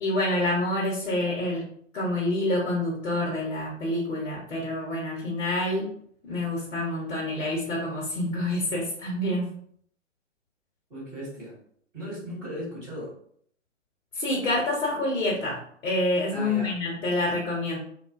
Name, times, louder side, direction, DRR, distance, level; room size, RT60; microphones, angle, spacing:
voice 1, 0.0-5.9 6.3-9.5 14.1-17.8, left 1 dB, 70° left, -3 dB, 0.9 m, -27 dB
voice 2, 10.9-11.6 11.9-13.1 16.3-16.7, equal, 5° right, -15 dB, 0.3 m, -37 dB
2.5 x 2.2 x 2.3 m, 0.63 s
figure-of-eight pair, 125°, 37 cm